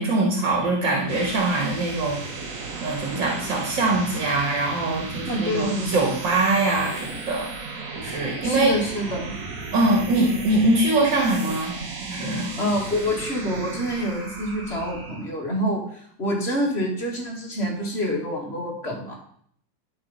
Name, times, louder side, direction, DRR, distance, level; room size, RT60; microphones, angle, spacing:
voice 1, 0.0-2.2 2.8-7.5 8.0-8.7 9.7-11.8 12.1-12.5, right 2 dB, 80° right, -1 dB, 2.7 m, -23 dB
sound 1, 0.8-15.3, right 3 dB, 50° right, 1.6 m, -35 dB
voice 2, 5.3-6.0 8.4-9.3 12.6-19.2, equal, 35° left, 0 dB, 2.3 m, -27 dB
11.5 x 5.3 x 5.5 m, 0.62 s
omnidirectional pair, 2.0 m